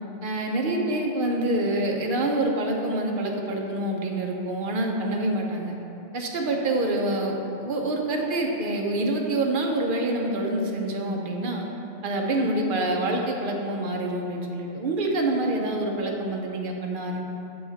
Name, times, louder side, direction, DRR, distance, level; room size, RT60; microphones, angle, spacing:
voice 1, 0.2-5.7 6.1-11.7 12.0-17.2, right 1 dB, 50° right, 1 dB, 0.8 m, -26 dB
7.1 x 4.9 x 4.0 m, 2.9 s
omnidirectional pair, 1.3 m